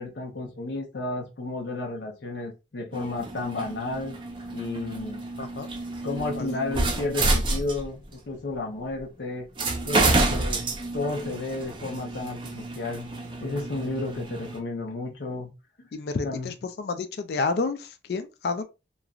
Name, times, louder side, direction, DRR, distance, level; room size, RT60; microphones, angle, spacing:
voice 1, 0.0-4.2 4.5-5.2 6.0-9.5 9.9-10.6 10.9-13.1 13.4-15.5 16.2-16.5, left 2 dB, 80° left, 0.7 m, -32 dB
sound 1, 2.9-8.1 9.0-9.1 9.6-14.6, right 2 dB, 30° right, 0.5 m, -29 dB
voice 2, 5.4-5.7 6.3-6.5 15.9-18.6, left 4 dB, 65° left, 0.4 m, -30 dB
3.0 x 2.4 x 2.3 m
head